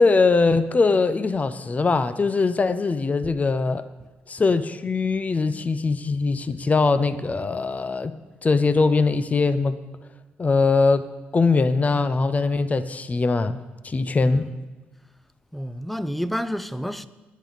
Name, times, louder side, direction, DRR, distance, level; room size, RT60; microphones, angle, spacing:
voice 1, 0.0-3.8 4.3-8.2 8.4-9.8 10.4-13.6 13.8-14.5, left 4 dB, 35° left, 0.7 m, -21 dB
voice 2, 14.2-14.7 15.5-17.1, equal, 5° left, 0.8 m, -30 dB
19.5 x 10.5 x 4.1 m
supercardioid pair, 55°, 4 cm